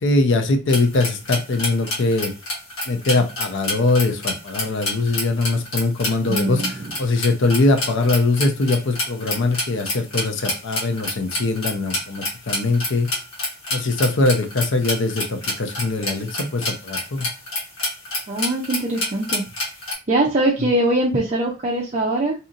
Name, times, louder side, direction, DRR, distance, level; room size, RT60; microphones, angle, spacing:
voice 1, 0.0-2.3 2.9-6.6 7.0-13.1 13.7-17.3, left 2 dB, 60° left, 0.5 m, -21 dB
sound 1, 0.7-19.9, left 2 dB, 75° left, 1.2 m, -28 dB
voice 2, 6.3-7.0 18.3-19.4 20.1-22.3, right 1 dB, 35° right, 0.5 m, -22 dB
2.8 x 2.7 x 2.5 m
head